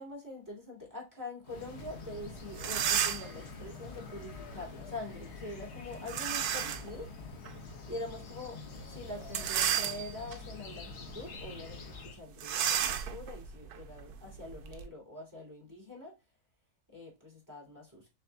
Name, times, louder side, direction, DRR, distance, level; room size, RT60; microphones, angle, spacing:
voice 1, 0.0-7.1 7.9-16.2 16.9-18.1, left 2 dB, 10° right, -4 dB, 2.7 m, -44 dB
sound 1, 1.4-12.2, left 3 dB, 50° left, 1.0 m, -46 dB
sound 2, 2.2-2.3 2.5-3.4 6.1-6.9 7.5-7.6 9.2-10.3 10.9-11.1 11.4-11.5 12.4-14.8, right 9 dB, 85° right, 1.2 m, -32 dB
6.5 x 3.4 x 2.2 m, 0.25 s
omnidirectional pair, 1.6 m